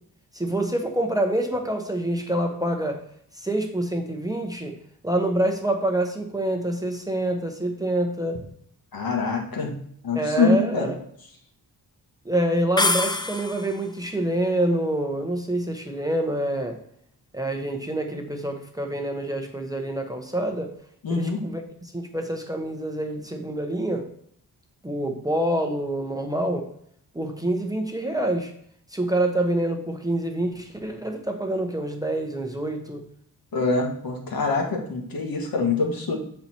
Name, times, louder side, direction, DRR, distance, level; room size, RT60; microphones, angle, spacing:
voice 1, 0.3-3.0 3.4-4.7 5.0-8.4 10.1-11.0 12.2-16.8 17.3-20.7 21.1-24.1 24.8-26.7 27.1-28.5 28.9-33.0, right 1 dB, 10° right, 3 dB, 0.9 m, -26 dB
voice 2, 8.9-9.7 10.0-10.9 21.0-21.4 33.5-36.2, left 4 dB, 60° left, 2 dB, 1.6 m, -24 dB
sound 1, 12.8-13.9, left 2 dB, 10° left, 0.3 m, -25 dB
7.6 x 4.3 x 4.3 m, 0.67 s
wide cardioid pair, 100°, 40 cm